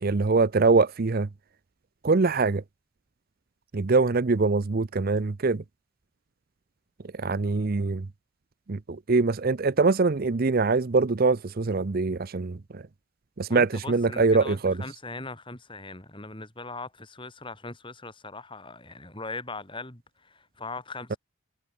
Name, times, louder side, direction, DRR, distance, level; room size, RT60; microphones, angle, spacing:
voice 1, 0.0-1.3 2.0-2.6 3.7-5.6 7.1-8.1 8.7-12.8 13.4-14.8, right 3 dB, 45° right, 0.6 m, -23 dB
voice 2, 13.5-21.2, left 3 dB, 25° left, 5.3 m, -40 dB
head